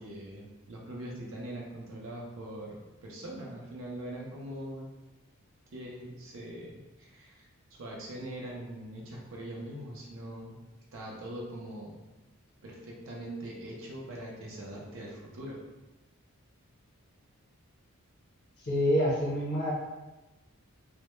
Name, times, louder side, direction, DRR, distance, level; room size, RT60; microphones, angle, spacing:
voice 1, 0.0-4.9 5.7-10.6 10.9-12.0 12.6-15.6, right 1 dB, 65° right, -2 dB, 0.5 m, -42 dB
voice 2, 18.6-19.7, equal, 50° left, -5 dB, 0.7 m, -27 dB
2.1 x 2.0 x 2.9 m, 1.1 s
head